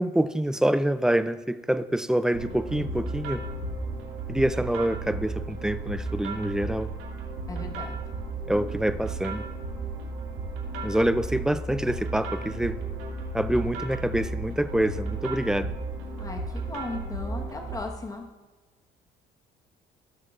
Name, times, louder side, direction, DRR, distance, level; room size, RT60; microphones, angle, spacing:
voice 1, 0.0-3.4 4.3-6.9 8.5-9.4 10.8-12.8 13.3-15.7, right 1 dB, 5° right, 13 dB, 0.3 m, -26 dB
sound 1, 2.3-17.8, right 2 dB, 80° right, 2.4 m, -34 dB
voice 2, 7.5-8.0 16.2-18.3, left 3 dB, 20° left, 2 dB, 1.2 m, -37 dB
16.5 x 6.6 x 2.5 m, 1.3 s
cardioid pair, 110°, 17 cm